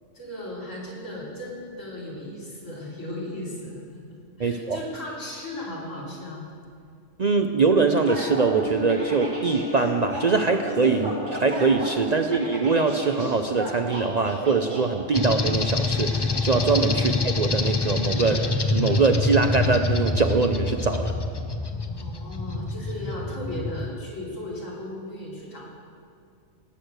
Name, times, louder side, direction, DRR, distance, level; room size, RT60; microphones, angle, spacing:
voice 1, 0.1-6.4 12.2-12.3 17.0-17.1 21.9-25.7, left 1 dB, 85° left, -5 dB, 3.7 m, -36 dB
voice 2, 4.4-4.8 7.2-18.4 18.7-21.1, right 4 dB, 50° right, 6 dB, 0.5 m, -23 dB
Wind instrument woodwind instrument, 7.6-12.4, left 7 dB, 55° left, 1.2 m, -37 dB
sound 1, 8.1-14.8, right 1 dB, 90° right, 3.1 m, -34 dB
sound 2, 15.1-23.9, left 3 dB, 30° left, 0.5 m, -26 dB
18.0 x 6.5 x 8.0 m, 2.3 s
omnidirectional pair, 1.3 m